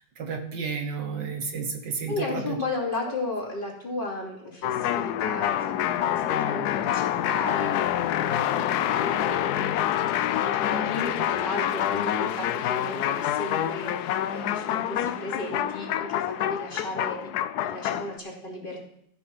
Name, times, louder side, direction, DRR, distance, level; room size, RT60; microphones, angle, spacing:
voice 1, 0.2-2.6, right 5 dB, 70° right, 5 dB, 1.9 m, -32 dB
voice 2, 2.1-9.7 10.5-17.3 17.6-18.8, left 2 dB, 25° left, -3 dB, 2.9 m, -35 dB
sound 1, 4.6-18.2, left 11 dB, 70° left, 1.0 m, -27 dB
14.0 x 7.1 x 6.1 m, 0.73 s
omnidirectional pair, 2.0 m